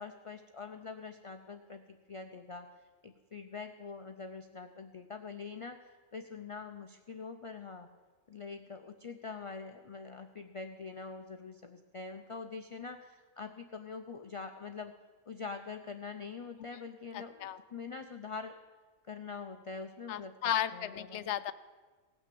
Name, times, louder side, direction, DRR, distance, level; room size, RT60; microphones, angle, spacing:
voice 1, 0.0-2.7 3.0-7.9 8.3-14.9 15.3-18.6 19.0-20.3 20.7-21.3, left 4 dB, 50° left, 7 dB, 0.4 m, -44 dB
voice 2, 17.1-17.6 20.1-21.5, left 10 dB, 70° left, 14 dB, 0.8 m, -34 dB
17.5 x 6.2 x 7.5 m, 1.4 s
omnidirectional pair, 1.3 m